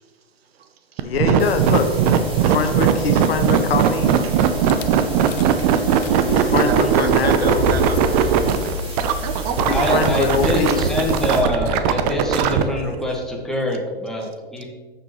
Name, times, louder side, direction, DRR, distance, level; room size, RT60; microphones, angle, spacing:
voice 1, 0.5-1.1 4.2-5.0 5.6-6.4 6.7-9.0, right 5 dB, 75° right, 1.2 m, -32 dB
voice 2, 1.0-1.9 2.4-4.2 6.2-7.6 9.7-10.8, left 5 dB, 70° left, 1.2 m, -23 dB
sound 1, 1.0-12.6, right 9 dB, 40° right, 0.8 m, -18 dB
sound 2, 1.4-11.4, right 1 dB, 15° right, 2.6 m, -36 dB
Rattle / Car / Engine starting, 4.7-4.9 5.3-5.6 5.9-13.6, left 7 dB, 40° left, 0.5 m, -32 dB
voice 3, 6.3-6.9 9.7-14.6, left 1 dB, ahead, 1.6 m, -25 dB
12.5 x 6.8 x 3.1 m
hypercardioid pair, 120°, 31 cm